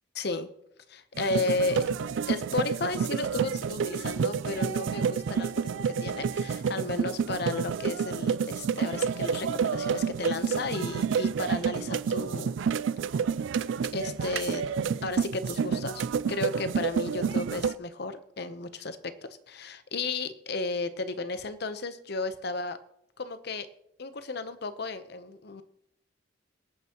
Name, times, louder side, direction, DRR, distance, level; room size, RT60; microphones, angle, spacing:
voice 1, 0.2-0.5 0.9-1.9 2.3-12.6 13.9-14.6 15.0-16.0 16.3-22.8 23.2-23.7 24.0-25.6, left 3 dB, 60° left, 11 dB, 0.8 m, -33 dB
sound 1, 1.2-17.7, right 6 dB, 85° right, 0.4 m, -29 dB
22.5 x 9.2 x 3.0 m, 0.77 s
head